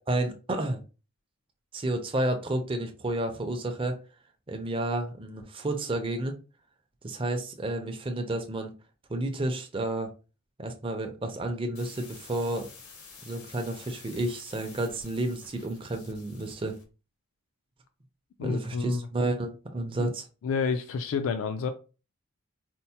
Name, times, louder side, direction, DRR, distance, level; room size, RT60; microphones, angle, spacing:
voice 1, 0.1-0.8 1.7-4.0 4.5-6.4 7.0-8.7 9.1-10.1 10.6-12.7 13.3-16.8 18.4-20.3, right 1 dB, 25° right, 4 dB, 0.5 m, -31 dB
sound 1, 11.7-16.9, left 4 dB, 90° left, 0.9 m, -50 dB
voice 2, 18.4-19.0 20.0-20.1 20.4-21.7, left 5 dB, 65° left, 9 dB, 0.3 m, -29 dB
4.3 x 2.0 x 2.7 m, 0.33 s
head